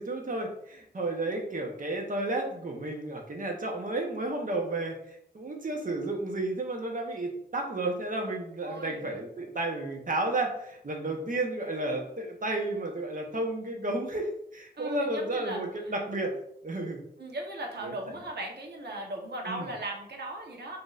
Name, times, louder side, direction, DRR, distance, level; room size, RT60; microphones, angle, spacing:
voice 1, 0.0-16.3 16.6-17.0 17.8-17.9 19.5-19.7, right 2 dB, 50° right, 1 dB, 0.8 m, -32 dB
voice 2, 8.6-9.0 14.7-15.9 17.2-20.8, right 1 dB, 75° right, 1 dB, 0.9 m, -38 dB
5.9 x 2.7 x 2.4 m, 0.72 s
wide cardioid pair, 100°, 17 cm